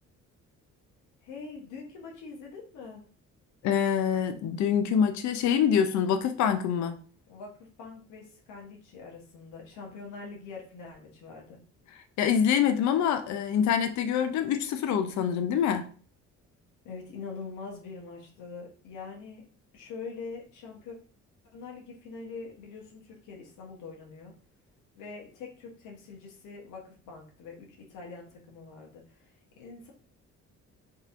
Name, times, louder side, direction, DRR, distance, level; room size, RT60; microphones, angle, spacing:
voice 1, 1.2-3.0 7.3-11.6 16.8-19.5 19.7-21.0 21.5-24.3 24.9-29.9, left 4 dB, 85° left, 0.9 m, -44 dB
voice 2, 3.6-7.0 12.2-15.8, left 8 dB, 70° left, 0.5 m, -25 dB
3.8 x 2.8 x 2.4 m
cardioid pair, 90°, 30 cm